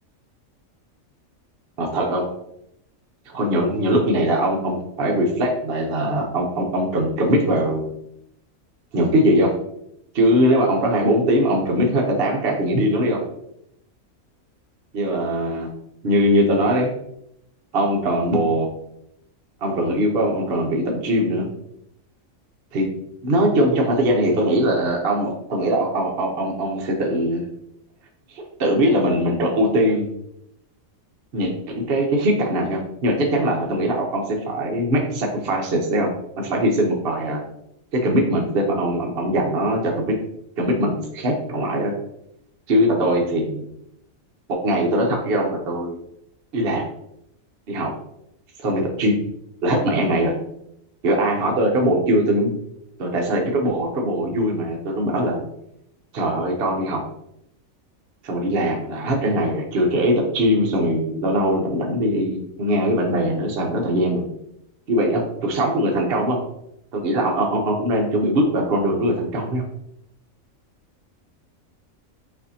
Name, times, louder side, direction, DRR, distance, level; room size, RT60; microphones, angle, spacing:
voice 1, 1.8-2.2 3.3-7.9 8.9-9.5 10.1-13.2 14.9-15.7 16.0-16.9 17.7-18.7 19.6-21.5 22.7-22.9 23.2-27.4 28.3-30.1 31.3-37.4 37.9-40.2 40.6-41.9 42.7-43.6 44.6-46.0 46.5-46.8 47.7-47.9 48.6-49.2 49.6-50.3 51.0-52.5 53.0-55.4 56.1-57.0 58.2-64.3 64.9-66.4 66.9-69.6, equal, 55° right, 0 dB, 0.9 m, -21 dB
6.5 x 2.6 x 2.7 m, 0.78 s
omnidirectional pair, 1.4 m